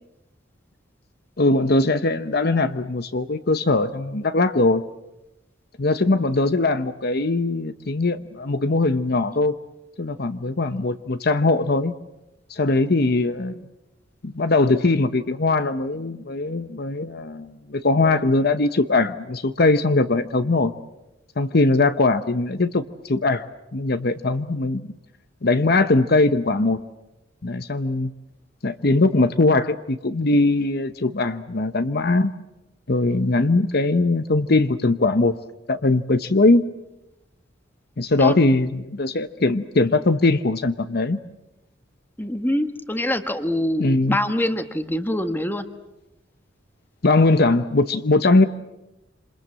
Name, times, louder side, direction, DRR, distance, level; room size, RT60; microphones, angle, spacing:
voice 1, 1.4-4.8 5.8-9.5 10.0-11.9 12.5-13.5 14.2-20.7 21.4-23.5 23.7-24.9 25.4-26.8 27.4-28.1 28.6-32.3 32.9-35.3 35.7-36.6 38.0-41.2 43.8-44.2 47.0-48.5, left 2 dB, 50° left, 11 dB, 0.9 m, -20 dB
voice 2, 42.2-45.6, left 1 dB, 10° left, 9 dB, 1.4 m, -24 dB
27.5 x 27.0 x 7.6 m, 0.93 s
head